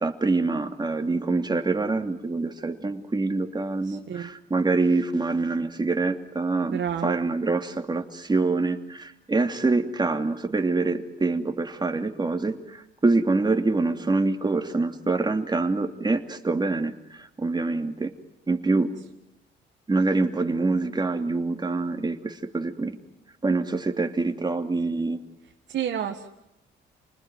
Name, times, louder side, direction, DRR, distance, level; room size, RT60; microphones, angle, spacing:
voice 1, 0.0-18.1 18.5-18.9 19.9-23.0 23.4-25.2, right 3 dB, 20° right, 5 dB, 2.8 m, -25 dB
voice 2, 3.8-4.3 6.7-7.2 25.7-26.3, right 9 dB, 65° right, 3 dB, 2.0 m, -30 dB
29.0 x 20.5 x 9.5 m, 0.87 s
cardioid pair, 90°, 20 cm